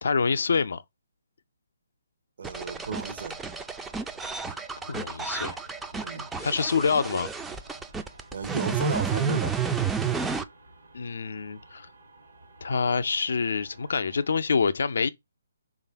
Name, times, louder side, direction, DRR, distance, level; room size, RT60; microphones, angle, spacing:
voice 1, 0.0-0.8 4.9-5.6 6.4-7.3 10.9-11.9 12.6-15.1, left 5 dB, 65° left, 0.4 m, -26 dB
sound 1, 2.4-10.4, right 5 dB, 10° right, 0.3 m, -31 dB
voice 2, 2.4-3.4 5.9-6.3 8.3-9.6, right 5 dB, 65° right, 0.7 m, -33 dB
sound 2, 2.4-14.3, right 2 dB, 80° right, 1.1 m, -53 dB
3.2 x 2.4 x 4.4 m
figure-of-eight pair, 140°, 0 cm